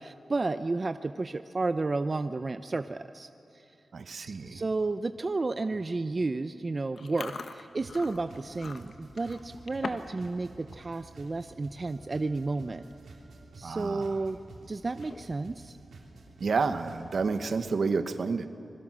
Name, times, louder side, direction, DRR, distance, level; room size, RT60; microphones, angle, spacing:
voice 1, 0.0-3.3 4.1-12.9 13.6-14.4 14.7-15.7, right 3 dB, 35° right, 10 dB, 0.6 m, -32 dB
voice 2, 3.9-4.6 13.6-14.2 16.4-18.5, right 4 dB, 70° right, 9 dB, 1.2 m, -30 dB
Chewing mastication, 7.0-10.2 10.5-10.8 11.3-11.5 12.2-12.3 12.6-12.9 13.3-13.4 14.9-15.4, left 4 dB, 75° left, 1.3 m, -42 dB
sound 1, 7.8-17.5, right 3 dB, 90° right, 3.3 m, -51 dB
25.5 x 22.0 x 6.2 m, 2.9 s
wide cardioid pair, 115°, 0 cm